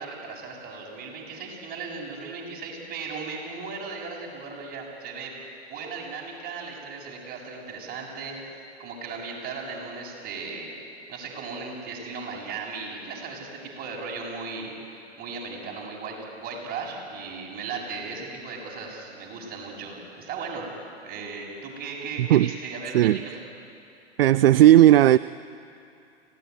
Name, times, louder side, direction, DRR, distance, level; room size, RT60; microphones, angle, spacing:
voice 1, 0.0-5.3 5.7-10.7 11.1-14.7 15.2-20.7 21.0-23.5, right 4 dB, 30° right, 7.2 m, -36 dB
voice 2, 24.2-25.2, right 13 dB, 60° right, 0.5 m, -15 dB
25.5 x 18.0 x 9.6 m
hypercardioid pair, 110°, 33 cm